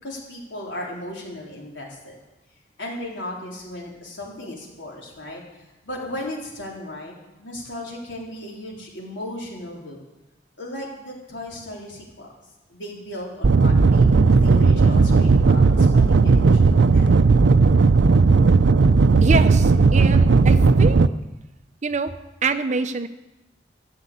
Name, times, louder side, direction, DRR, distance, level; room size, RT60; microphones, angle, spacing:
voice 1, 0.0-2.2 2.8-7.1 7.4-10.0 10.6-12.3 12.7-17.1, left 1 dB, 85° left, -2 dB, 3.9 m, -36 dB
sound 1, 13.4-21.1, right 4 dB, 75° right, 0.5 m, -15 dB
voice 2, 19.2-21.0 21.8-23.1, right 4 dB, 40° right, 10 dB, 0.7 m, -25 dB
14.0 x 8.3 x 8.3 m, 1.0 s
head